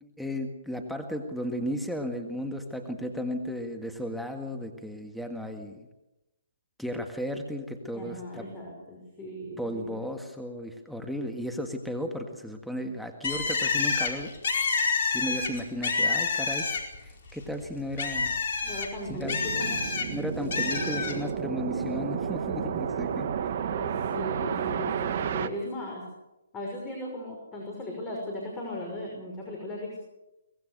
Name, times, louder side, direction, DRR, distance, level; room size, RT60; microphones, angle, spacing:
voice 1, 0.0-5.9 6.8-8.5 9.6-14.3 15.1-16.7 17.0-18.3 19.1-19.4 20.1-23.3, equal, ahead, 4 dB, 1.8 m, -34 dB
voice 2, 7.9-10.0 18.6-19.8 23.7-26.0 26.5-30.0, left 1 dB, 15° left, -1 dB, 5.9 m, -37 dB
Bird, 13.2-17.1 17.4-20.1 20.5-21.2, left 4 dB, 50° left, 4.7 m, -28 dB
sound 1, 19.1-25.5, right 8 dB, 50° right, 1.7 m, -31 dB
23.5 x 20.0 x 6.7 m, 0.97 s
figure-of-eight pair, 140°, 0 cm